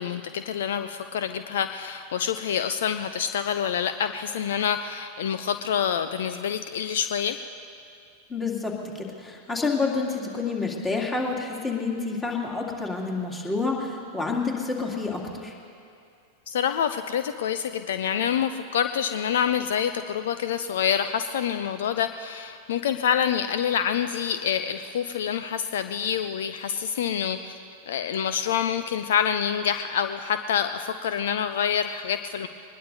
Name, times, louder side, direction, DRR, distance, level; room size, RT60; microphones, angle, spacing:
voice 1, 0.0-7.4 16.5-27.6 27.9-32.5, left 8 dB, 60° left, 10 dB, 0.5 m, -27 dB
voice 2, 8.3-15.5, left 4 dB, 15° left, -2 dB, 2.6 m, -28 dB
23.5 x 20.5 x 2.7 m, 2.5 s
figure-of-eight pair, 90°, 0 cm